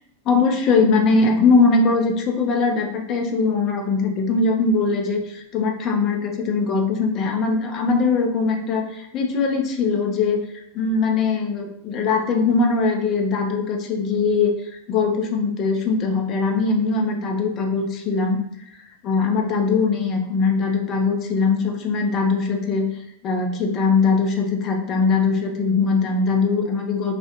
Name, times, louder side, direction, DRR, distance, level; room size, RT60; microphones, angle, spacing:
voice 1, 0.3-10.4 10.7-18.4 19.0-22.9 23.2-27.2, left 4 dB, 35° left, 3 dB, 0.3 m, -21 dB
2.4 x 2.0 x 2.5 m, 0.76 s
figure-of-eight pair, 90°, 0 cm